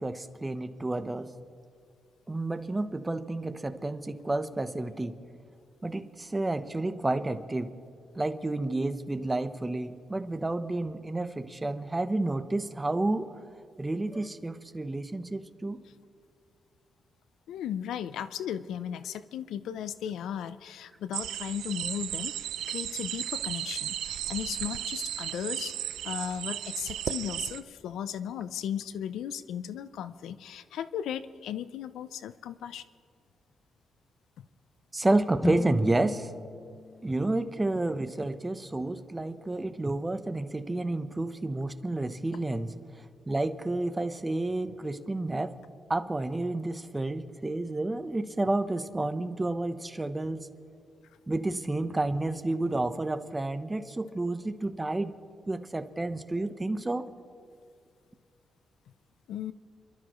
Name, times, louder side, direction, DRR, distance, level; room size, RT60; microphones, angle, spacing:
voice 1, 0.0-1.3 2.3-5.2 5.8-7.7 8.1-13.3 13.8-15.8 34.9-36.3 37.0-42.7 43.3-45.6 45.9-50.5 51.3-55.2 55.5-57.1, right 2 dB, 20° right, 10 dB, 0.8 m, -30 dB
voice 2, 17.5-32.8 34.4-34.5 59.3-59.5, left 9 dB, 90° left, 14 dB, 0.4 m, -36 dB
sound 1, 21.1-27.6, right 11 dB, 90° right, 0.3 m, -35 dB
sound 2, 35.4-39.5, left 2 dB, 20° left, 0.6 m, -37 dB
29.0 x 12.5 x 3.0 m, 2.2 s
cardioid pair, 85°, 0 cm